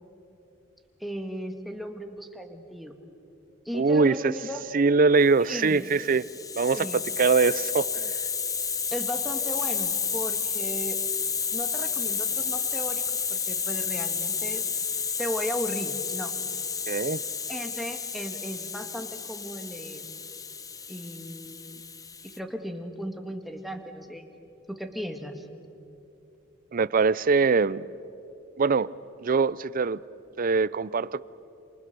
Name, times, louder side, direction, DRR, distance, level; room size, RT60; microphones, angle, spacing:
voice 1, 1.0-3.0 3.7-4.6 5.5-5.9 6.7-7.0 8.9-11.0 11.5-14.6 15.2-16.3 17.5-20.0 20.9-21.8 22.2-24.2 24.7-25.5, equal, ahead, 5 dB, 1.8 m, -36 dB
voice 2, 3.7-4.3 4.7-6.2 6.6-8.1 16.9-17.2 26.7-27.9 28.6-28.9 29.2-30.0 30.4-31.2, right 4 dB, 45° right, 20 dB, 0.5 m, -23 dB
Hiss, 5.7-22.4, left 6 dB, 20° left, 0.7 m, -31 dB
28.5 x 28.0 x 6.9 m, 2.8 s
head